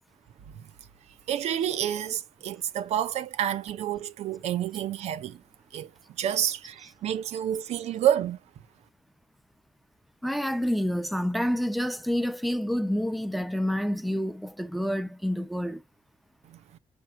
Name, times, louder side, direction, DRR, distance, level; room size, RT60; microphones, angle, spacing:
voice 1, 1.3-5.4 5.7-5.9 6.2-8.4 16.5-16.8, right 10 dB, 85° right, 0.5 m, -29 dB
voice 2, 10.2-15.8, equal, ahead, 0.6 m, -28 dB
5.7 x 4.5 x 5.8 m
cardioid pair, 65°, 11 cm